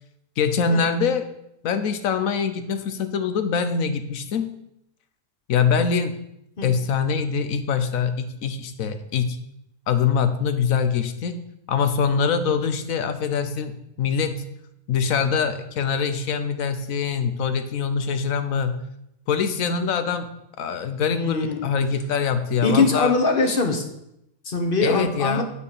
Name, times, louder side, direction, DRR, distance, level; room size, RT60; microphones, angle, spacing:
voice 1, 0.4-1.3 1.6-4.5 5.5-6.2 6.6-9.4 9.9-11.4 11.7-13.7 14.0-14.4 14.9-18.8 19.3-23.1 24.8-25.4, left 6 dB, 85° left, 10 dB, 1.2 m, -24 dB
voice 2, 21.1-21.7 22.6-23.8 24.4-25.4, left 3 dB, 45° left, 4 dB, 1.2 m, -22 dB
8.4 x 4.6 x 6.8 m, 0.81 s
omnidirectional pair, 1.4 m